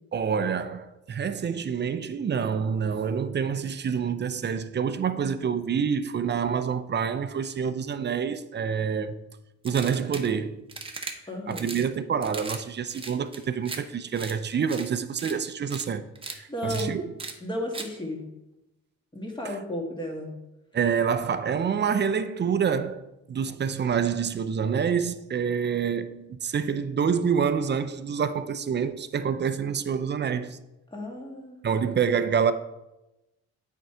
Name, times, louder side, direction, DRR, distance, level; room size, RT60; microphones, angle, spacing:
voice 1, 0.1-9.2 9.6-10.6 11.5-16.1 16.3-17.1 19.4-19.6 20.7-30.6 31.6-32.5, right 7 dB, 35° right, 0.6 m, -27 dB
sound 1, 9.6-10.3 10.7-11.1 11.5-11.9 12.2-12.6 12.9-13.8 14.2-14.3 14.7-14.9 15.2-15.3 15.7-15.9 16.2-16.4 16.7-16.8 17.2-17.3 17.7-17.9, right 3 dB, 20° right, 1.0 m, -37 dB
voice 2, 11.3-11.8 16.5-16.9 17.4-18.2 19.1-20.3 30.9-31.6, left 1 dB, 15° left, 1.8 m, -33 dB
7.9 x 4.6 x 4.9 m
cardioid pair, 90°, 30 cm